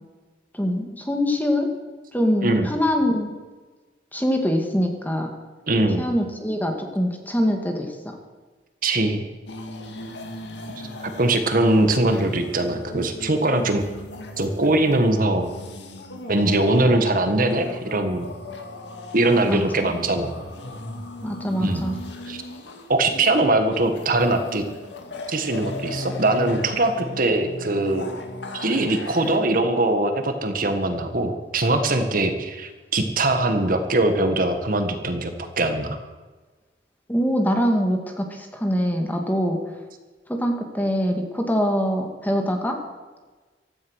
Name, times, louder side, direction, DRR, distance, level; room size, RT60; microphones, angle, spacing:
voice 1, 0.5-1.7 2.1-3.3 4.1-5.3 6.0-8.2 19.5-20.0 21.2-22.0 37.1-39.6 40.3-42.8, equal, 10° left, 3 dB, 2.2 m, -24 dB
voice 2, 5.7-6.1 8.8-9.2 11.2-13.8 14.4-15.5 16.3-18.3 19.1-20.3 21.6-21.9 22.3-22.4 22.9-24.6 25.3-28.1 28.5-36.0, right 2 dB, 50° right, 7 dB, 1.6 m, -21 dB
sound 1, 9.5-29.4, left 1 dB, 80° left, 2.2 m, -37 dB
16.0 x 13.5 x 6.4 m, 1.3 s
head